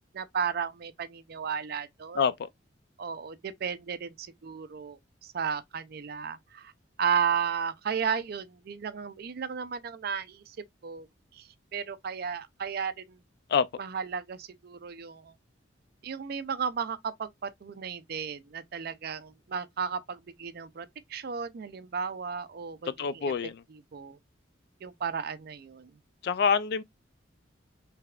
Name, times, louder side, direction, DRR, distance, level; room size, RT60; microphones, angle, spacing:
voice 1, 0.1-2.2 3.0-6.7 7.0-10.6 10.8-11.1 11.3-13.2 13.8-15.3 16.0-23.3 23.7-24.2 24.8-25.9, right 6 dB, 55° right, 0.4 m, -34 dB
voice 2, 23.0-23.6 26.2-26.8, left 6 dB, 55° left, 0.3 m, -25 dB
3.4 x 3.3 x 2.3 m
head